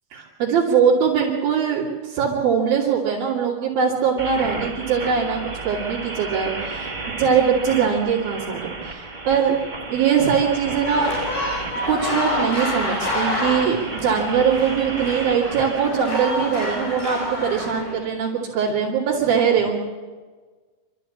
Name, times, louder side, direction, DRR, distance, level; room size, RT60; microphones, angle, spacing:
voice 1, 0.1-6.9 7.2-9.5 9.9-11.1 11.9-19.8, right 7 dB, 80° right, -6 dB, 4.6 m, -21 dB
sound 1, 4.2-15.9, right 3 dB, 45° right, 0.5 m, -33 dB
sound 2, 10.8-17.9, left 1 dB, 65° left, 8.3 m, -28 dB
27.5 x 13.0 x 8.6 m, 1.4 s
omnidirectional pair, 4.1 m